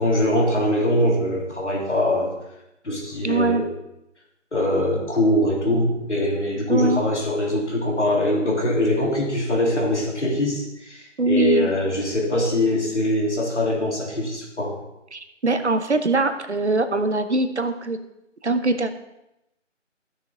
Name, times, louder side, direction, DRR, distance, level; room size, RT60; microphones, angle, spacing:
voice 1, 0.0-2.3 2.8-3.7 4.5-14.8, left 1 dB, 65° left, -2 dB, 3.0 m, -22 dB
voice 2, 3.2-3.6 6.7-7.0 11.2-11.7 15.1-18.0 18.4-18.9, right 2 dB, 60° right, 9 dB, 0.9 m, -22 dB
14.0 x 6.6 x 3.9 m, 0.89 s
figure-of-eight pair, 170°, 38 cm